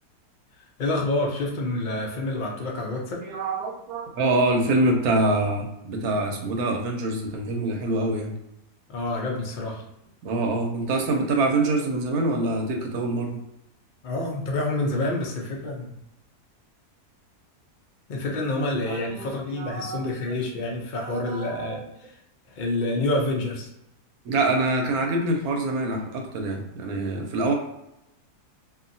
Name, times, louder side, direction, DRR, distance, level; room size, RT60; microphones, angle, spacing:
voice 1, 0.8-3.2 8.9-9.8 14.0-16.0 18.1-22.2 22.5-23.7, left 2 dB, 70° left, -1 dB, 0.4 m, -28 dB
voice 2, 3.2-8.3 10.2-13.4 18.9-20.0 21.0-21.9 24.2-27.5, right 2 dB, 70° right, 2 dB, 1.1 m, -25 dB
2.8 x 2.6 x 2.6 m, 0.86 s
omnidirectional pair, 1.7 m